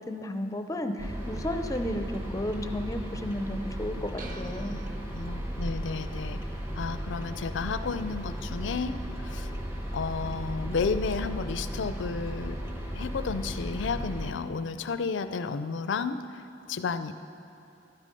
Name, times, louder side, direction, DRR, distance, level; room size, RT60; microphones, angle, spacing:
voice 1, 0.1-4.8, left 1 dB, 20° left, 7 dB, 0.5 m, -33 dB
sound 1, 1.0-14.3, equal, 15° right, 1.0 m, -35 dB
sound 2, 4.2-5.8, right 3 dB, 45° right, 0.8 m, -45 dB
voice 2, 5.1-6.4 6.7-9.5 9.9-12.6 12.9-16.2 16.7-17.1, left 5 dB, 75° left, 11 dB, 0.4 m, -32 dB
11.5 x 9.9 x 5.3 m, 2.8 s
head